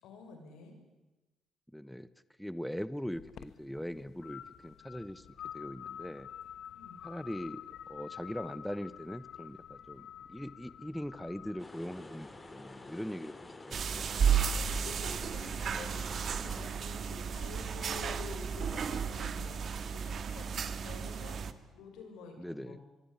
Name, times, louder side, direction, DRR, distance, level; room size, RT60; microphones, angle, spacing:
voice 1, 0.0-0.7 6.7-7.0 14.5-22.8, left 5 dB, 90° left, 5 dB, 7.0 m, -49 dB
voice 2, 1.7-2.1 2.4-5.3 5.5-6.3 7.0-14.1 22.4-22.8, equal, 5° left, 15 dB, 1.0 m, -41 dB
sound 1, 3.1-11.6, left 10 dB, 70° left, 1.3 m, -48 dB
sound 2, 11.6-16.6, left 2 dB, 20° left, 3.6 m, -49 dB
sound 3, 13.7-21.5, right 7 dB, 55° right, 1.8 m, -33 dB
24.5 x 23.5 x 9.9 m, 1.1 s
cardioid pair, 90°, 0 cm